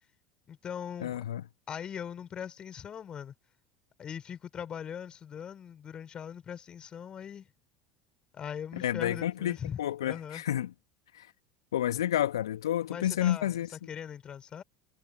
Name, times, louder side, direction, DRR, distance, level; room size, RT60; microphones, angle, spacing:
voice 1, 0.5-1.2 1.7-3.3 4.0-7.5 8.3-10.4 12.9-14.6, left 8 dB, 35° left, 4.8 m, -40 dB
voice 2, 1.0-1.4 8.8-10.7 11.1-11.3 11.7-13.7, left 11 dB, 75° left, 2.6 m, -30 dB
figure-of-eight pair, 70°, 3 cm